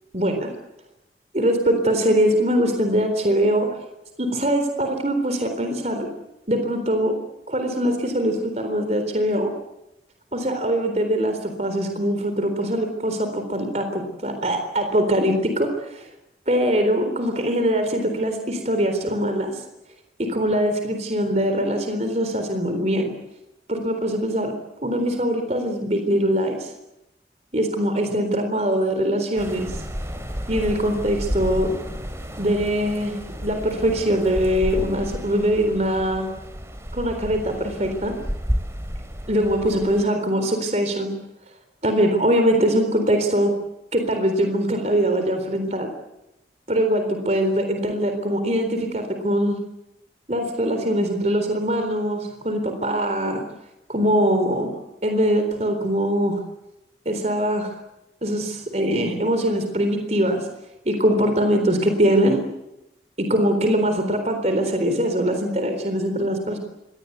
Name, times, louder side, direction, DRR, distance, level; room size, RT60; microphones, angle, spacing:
voice 1, 0.1-0.5 1.3-3.7 4.2-6.1 6.5-7.2 7.5-9.5 10.3-16.1 16.5-19.6 20.2-23.1 23.7-24.5 24.8-26.7 27.5-29.8 30.5-31.7 32.4-33.1 33.4-36.3 36.9-38.1 39.3-41.1 41.8-43.6 43.9-45.9 46.7-49.6 50.3-53.4 53.9-54.7 55.0-56.4 57.1-57.7 58.2-60.5 60.9-62.4 63.2-66.6, equal, 40° right, 6 dB, 3.9 m, -22 dB
sound 1, 29.4-40.0, equal, 15° right, 3.2 m, -32 dB
25.5 x 20.5 x 8.1 m, 0.89 s
head